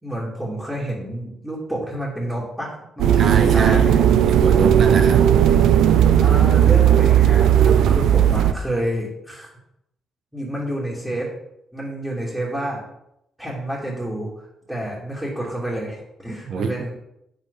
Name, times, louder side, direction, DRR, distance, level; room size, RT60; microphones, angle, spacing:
voice 1, 0.0-4.0 6.2-9.5 10.3-11.3 11.7-12.8 13.4-16.9, right 1 dB, 5° right, -7 dB, 3.0 m, -29 dB
sound 1, 3.0-8.5, right 10 dB, 80° right, 0.6 m, -15 dB
voice 2, 3.1-3.9 4.3-5.3 16.5-16.7, right 5 dB, 60° right, 7 dB, 1.2 m, -24 dB
8.8 x 7.9 x 4.2 m, 0.80 s
cardioid pair, 90°, 0 cm